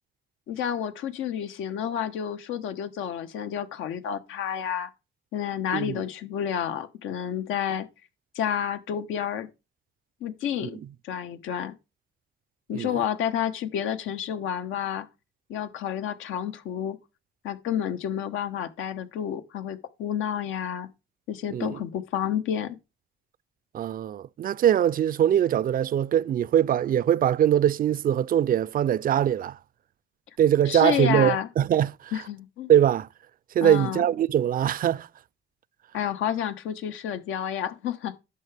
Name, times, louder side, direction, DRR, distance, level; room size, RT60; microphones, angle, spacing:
voice 1, 0.5-4.9 5.3-7.9 8.3-9.5 10.2-10.8 11.0-11.7 12.7-15.1 15.5-17.0 17.4-20.9 21.3-22.8 30.7-31.5 32.1-32.7 33.6-34.0 35.9-38.2, left 9 dB, 90° left, 1.2 m, -30 dB
voice 2, 23.7-29.6 30.4-32.1 32.7-33.1 33.5-35.1, right 10 dB, 45° right, 0.4 m, -22 dB
10.5 x 6.8 x 3.4 m
cardioid pair, 90°, 20 cm